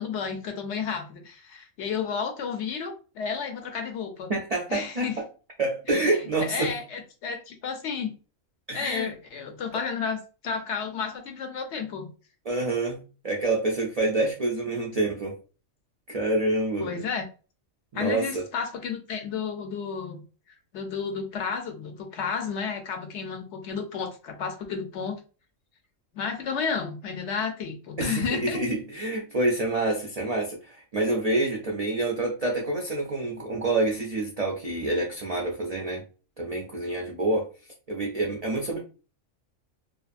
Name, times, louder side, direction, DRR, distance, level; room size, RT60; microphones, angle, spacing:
voice 1, 0.0-4.3 4.7-5.1 5.9-8.1 8.7-12.1 16.8-17.3 17.9-20.2 20.7-25.2 26.1-28.6, left 6 dB, 65° left, 0.8 m, -32 dB
voice 2, 4.3-5.2 5.6-6.8 8.7-9.1 12.5-13.0 13.2-15.4 16.1-17.1 17.9-18.5 28.0-36.0 36.4-37.5 37.9-38.8, right 2 dB, 80° right, 0.3 m, -27 dB
2.8 x 2.4 x 2.4 m
omnidirectional pair, 1.4 m